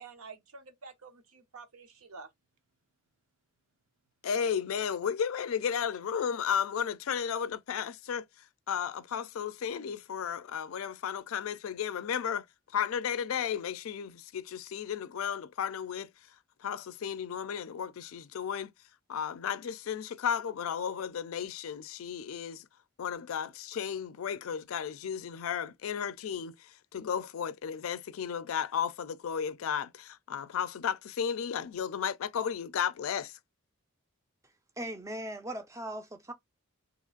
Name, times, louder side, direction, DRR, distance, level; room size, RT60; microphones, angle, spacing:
voice 1, 0.0-2.3, right 4 dB, 85° right, 0.8 m, -49 dB
voice 2, 4.2-8.2 8.7-12.4 12.7-16.1 16.6-18.7 19.1-22.6 23.0-26.5 26.9-33.3, left 7 dB, 75° left, 0.4 m, -34 dB
voice 3, 34.8-36.3, right 1 dB, 15° right, 0.4 m, -39 dB
2.9 x 2.4 x 3.7 m
head